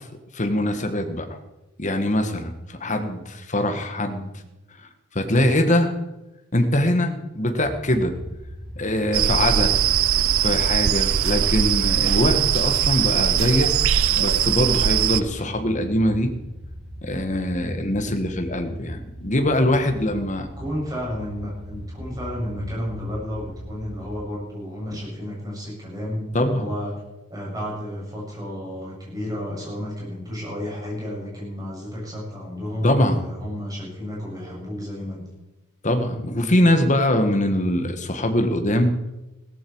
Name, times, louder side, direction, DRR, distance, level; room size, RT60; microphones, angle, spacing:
voice 1, 0.3-1.3 1.8-4.2 5.1-5.9 6.5-8.1 8.7-9.7 10.4-13.7 14.1-16.3 17.0-20.5 26.3-26.7 32.8-33.2 35.8-38.9, left 1 dB, 35° left, 6 dB, 1.6 m, -22 dB
sound 1, 7.6-24.2, equal, ahead, 3.7 m, -39 dB
sound 2, 9.1-15.2, right 9 dB, 65° right, 0.5 m, -21 dB
voice 2, 20.6-26.9 27.3-35.2, equal, 15° right, -4 dB, 7.4 m, -32 dB
16.5 x 14.5 x 4.7 m, 1.0 s
head